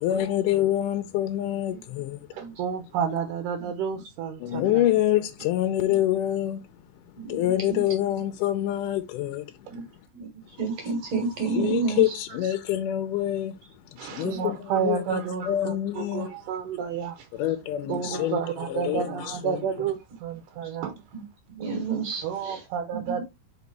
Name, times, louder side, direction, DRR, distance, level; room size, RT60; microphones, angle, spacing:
voice 1, 0.0-2.3 4.4-6.7 7.3-9.6 11.5-13.6 13.9-15.2 15.4-16.3 17.4-18.4 18.7-19.6, left 13 dB, 80° left, 2.0 m, -26 dB
voice 2, 2.3-4.8 9.7-9.8 12.4-12.6 14.0-17.3 17.9-20.9 22.2-23.2, right 7 dB, 75° right, 2.2 m, -30 dB
voice 3, 7.2-7.8 9.7-9.8 10.1-10.3 10.6-12.1 14.2-14.4 17.8-17.9 20.6-20.7 21.1-21.2 21.5-22.6 22.9-23.2, right 4 dB, 55° right, 2.2 m, -30 dB
5.2 x 4.0 x 4.7 m
omnidirectional pair, 4.0 m